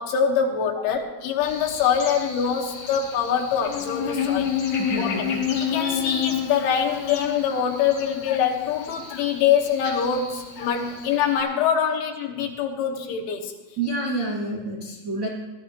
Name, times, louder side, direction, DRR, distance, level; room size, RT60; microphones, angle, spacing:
voice 1, 0.0-4.5 5.0-5.1 5.7-13.5, left 7 dB, 80° left, 1 dB, 3.8 m, -24 dB
Buzz, 1.4-11.4, left 7 dB, 55° left, 3.8 m, -30 dB
voice 2, 4.8-5.4 13.8-15.3, right 2 dB, 90° right, -4 dB, 1.0 m, -28 dB
19.0 x 13.0 x 3.0 m, 1.1 s
omnidirectional pair, 5.5 m